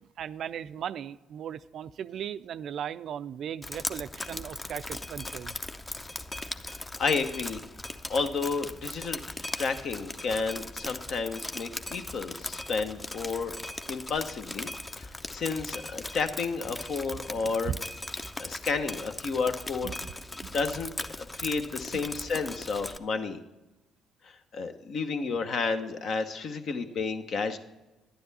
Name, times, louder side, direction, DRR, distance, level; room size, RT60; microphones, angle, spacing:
voice 1, 0.0-5.5 17.4-17.8 19.8-20.1 20.4-20.5, right 9 dB, 60° right, 0.3 m, -37 dB
Drip, 3.6-23.0, left 2 dB, 20° left, 0.6 m, -39 dB
voice 2, 6.7-7.6 8.1-13.6 13.9-14.7 15.0-17.7 18.4-19.9 20.5-20.9 21.2-23.4 24.2-27.6, left 4 dB, 55° left, 0.9 m, -31 dB
11.5 x 9.8 x 4.1 m
hypercardioid pair, 45°, 0 cm